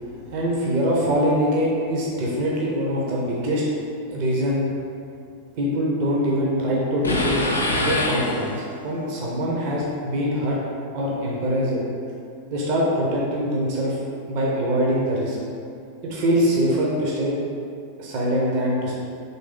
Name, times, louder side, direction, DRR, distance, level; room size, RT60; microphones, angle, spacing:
voice 1, 0.3-3.6 4.1-4.6 5.5-7.4 7.8-10.6 10.9-11.8 12.5-14.0 14.3-15.4 16.0-17.4 18.0-19.0, equal, 45° right, -4 dB, 0.8 m, -23 dB
sound 1, 7.0-8.9, left 1 dB, 80° left, 0.5 m, -24 dB
4.1 x 3.1 x 3.8 m, 2.5 s
figure-of-eight pair, 90°, 0 cm